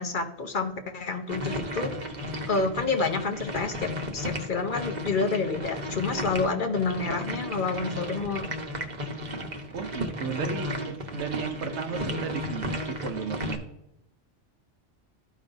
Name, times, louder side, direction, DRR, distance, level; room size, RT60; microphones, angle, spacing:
voice 1, 0.0-1.9 2.5-8.5, left 4 dB, 50° left, 5 dB, 0.8 m, -29 dB
sound 1, 1.3-13.6, equal, 40° right, 1.1 m, -34 dB
voice 2, 9.7-13.6, right 6 dB, 75° right, 8 dB, 1.0 m, -34 dB
13.0 x 5.1 x 2.6 m, 0.84 s
omnidirectional pair, 1.2 m